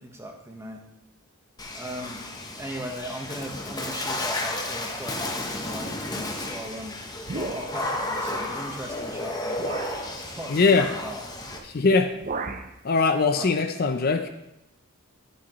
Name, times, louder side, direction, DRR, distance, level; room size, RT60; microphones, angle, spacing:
voice 1, 0.0-0.8 1.7-2.2 2.6-7.0 7.3-9.6 10.2-11.2 13.3-13.5, right 1 dB, 15° right, 2 dB, 1.2 m, -38 dB
Water / Splash splatter, 1.6-11.6, left 2 dB, 20° left, 1.0 m, -33 dB
sound 1, 7.2-8.0 8.9-9.0 9.6-10.0 11.4-11.7 11.9-12.7, right 3 dB, 40° right, 0.6 m, -34 dB
voice 2, 10.5-10.9 11.6-12.2 12.8-14.3, left 4 dB, 45° left, 7 dB, 0.6 m, -21 dB
11.0 x 8.4 x 3.1 m, 0.88 s
head